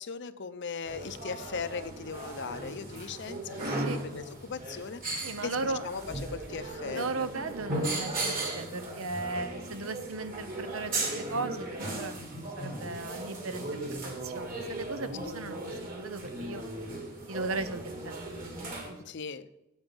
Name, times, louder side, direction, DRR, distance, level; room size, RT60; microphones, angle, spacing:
voice 1, 0.0-7.3 15.2-15.3 19.0-19.5, left 5 dB, 55° left, 12 dB, 0.7 m, -39 dB
sound 1, 0.9-18.9, right 2 dB, 45° right, 2.9 m, -37 dB
voice 2, 3.6-4.1 5.2-5.8 6.8-12.1 12.4-16.6 17.3-18.2 18.9-19.2, right 3 dB, 70° right, 11 dB, 0.9 m, -37 dB
8.9 x 8.2 x 7.1 m, 0.92 s
head